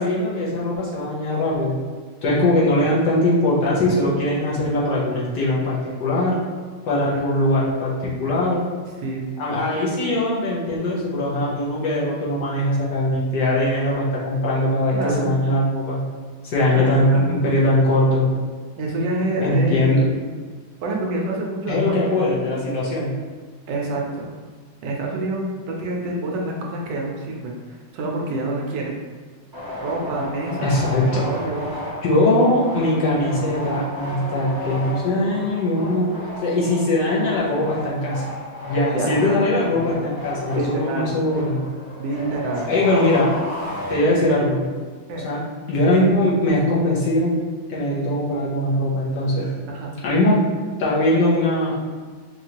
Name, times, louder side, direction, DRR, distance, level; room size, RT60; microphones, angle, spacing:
voice 1, 0.0-1.8 2.2-6.4 6.9-8.6 9.4-16.0 16.5-18.3 19.4-20.1 21.7-23.1 30.6-31.2 32.0-36.1 36.4-38.2 38.7-41.6 42.7-43.3 43.9-44.6 45.2-45.4 45.7-47.3 47.7-49.5 50.0-50.4 50.8-51.8, left 1 dB, 85° left, -6 dB, 1.6 m, -21 dB
voice 2, 2.2-2.9 7.1-7.2 9.0-9.3 14.9-15.3 16.7-17.3 18.8-20.0 20.8-22.2 23.7-24.3 24.8-28.9 29.8-30.9 31.2-31.7 38.9-39.4 39.7-39.9 40.5-41.1 42.0-42.7 45.1-45.3 49.7-49.9, right 2 dB, 90° right, -1 dB, 1.4 m, -27 dB
sound 1, 29.5-44.5, left 1 dB, 20° right, 0.5 m, -33 dB
4.8 x 2.6 x 2.9 m, 1.5 s
omnidirectional pair, 1.9 m